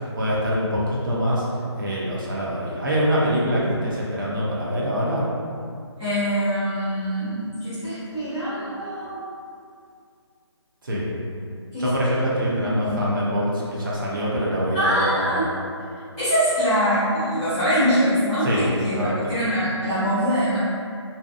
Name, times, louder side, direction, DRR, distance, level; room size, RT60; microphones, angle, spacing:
voice 1, 0.0-1.5 1.7-5.3 10.8-11.1 11.8-15.4 18.4-18.6 18.9-19.2, equal, 45° right, -6 dB, 0.5 m, -24 dB
voice 2, 6.0-9.2 11.7-11.9 12.5-13.1 14.7-15.5 16.2-20.6, equal, 5° left, -20 dB, 0.4 m, -23 dB
2.6 x 2.1 x 2.3 m, 2.3 s
figure-of-eight pair, 170°, 15 cm